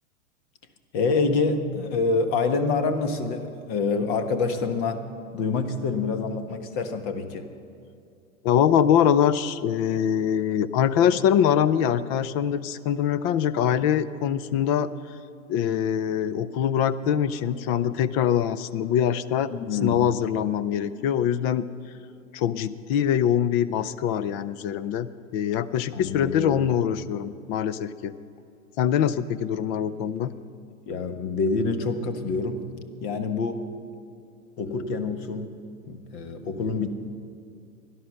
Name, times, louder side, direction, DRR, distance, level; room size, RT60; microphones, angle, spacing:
voice 1, 0.9-5.0 5.3-7.5 19.5-20.0 25.9-26.6 30.9-32.7 33.0-33.6 34.6-35.5 35.9-36.9, left 4 dB, 45° left, 8 dB, 1.5 m, -26 dB
voice 2, 8.4-14.9 15.5-19.5 19.8-21.7 22.3-28.1 28.8-30.3, left 9 dB, 25° left, 15 dB, 0.4 m, -23 dB
17.0 x 11.5 x 6.4 m, 2.5 s
hypercardioid pair, 115°, 43 cm